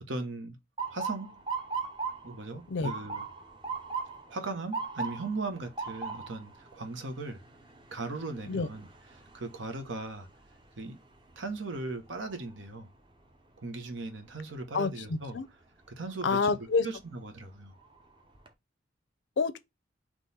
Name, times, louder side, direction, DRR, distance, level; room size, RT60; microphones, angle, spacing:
voice 1, 0.1-0.6 0.9-1.4 2.2-3.2 4.3-7.4 7.9-8.9 9.3-10.3 10.8-11.0 11.4-12.9 13.6-15.4 16.0-16.4 16.8-17.7, right 3 dB, 80° right, 0.9 m, -38 dB
Motor vehicle (road) / Siren, 0.8-12.7 13.1-13.6 14.3-14.7 16.5-16.8 17.3-17.4 17.8-18.5, right 5 dB, 25° right, 0.6 m, -40 dB
voice 2, 14.7-15.5 16.2-16.9 19.4-19.6, left 4 dB, 75° left, 0.5 m, -28 dB
3.7 x 3.0 x 4.0 m
head